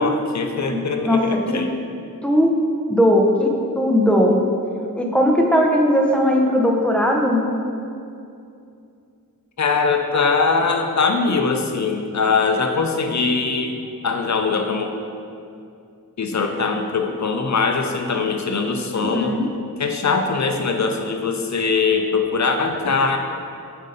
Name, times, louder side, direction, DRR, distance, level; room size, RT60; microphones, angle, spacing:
voice 1, 0.0-1.7 9.6-13.8 14.0-14.9 16.2-19.4 19.8-23.2, left 4 dB, 55° left, 5 dB, 0.6 m, -21 dB
voice 2, 1.0-1.6 2.2-2.5 2.9-4.4 5.0-7.4 19.0-19.5, equal, 5° left, 0 dB, 0.7 m, -18 dB
7.8 x 2.8 x 5.1 m, 2.5 s
wide cardioid pair, 75°, 35 cm